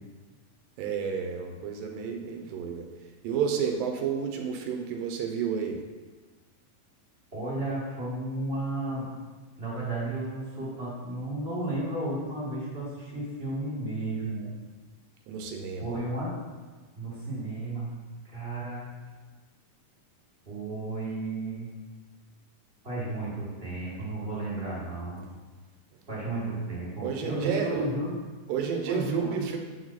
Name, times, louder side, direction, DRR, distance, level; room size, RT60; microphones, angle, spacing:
voice 1, 0.8-2.9 3.2-5.8 15.3-15.9 27.0-27.9 28.5-29.6, right 7 dB, 85° right, 3 dB, 2.4 m, -31 dB
voice 2, 7.3-9.1 9.6-14.5 15.8-16.4 16.9-17.9 18.3-18.9 20.4-21.7 22.8-25.2 26.1-28.2 28.8-29.5, right 2 dB, 25° right, -8 dB, 1.4 m, -33 dB
8.1 x 4.7 x 4.1 m, 1.3 s
omnidirectional pair, 3.9 m